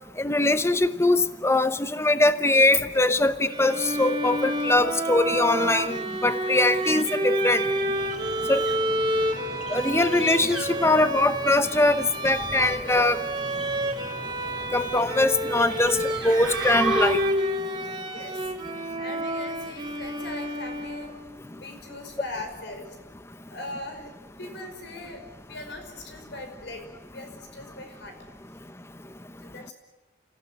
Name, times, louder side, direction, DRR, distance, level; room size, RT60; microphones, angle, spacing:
voice 1, 0.2-7.6 8.5-8.6 9.7-13.2 14.7-16.0 16.2-17.2, left 2 dB, 15° left, 12 dB, 0.8 m, -22 dB
Bowed string instrument, 3.5-21.3, right 1 dB, 25° right, 2.1 m, -29 dB
sound 1, 7.6-17.5, right 2 dB, 5° right, 3.1 m, -37 dB
voice 2, 18.1-18.5 19.0-21.1 21.5-23.0 23.5-24.1 24.4-26.8 27.1-28.2 29.4-29.7, left 2 dB, 65° left, 6 dB, 5.2 m, -40 dB
27.5 x 16.0 x 9.5 m, 1.2 s
head